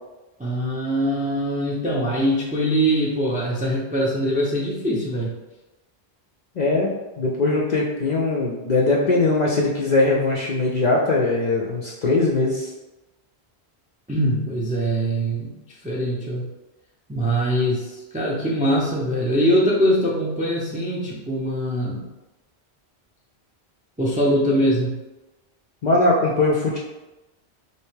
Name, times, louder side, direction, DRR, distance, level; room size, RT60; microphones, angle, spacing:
voice 1, 0.4-5.3 14.1-15.5 15.8-16.5 17.1-22.0 24.0-25.0, equal, 15° right, -4 dB, 0.3 m, -22 dB
voice 2, 6.6-6.9 7.2-12.7 25.8-26.8, left 2 dB, 55° left, -3 dB, 0.5 m, -20 dB
3.3 x 2.8 x 3.1 m, 1.1 s
omnidirectional pair, 1.1 m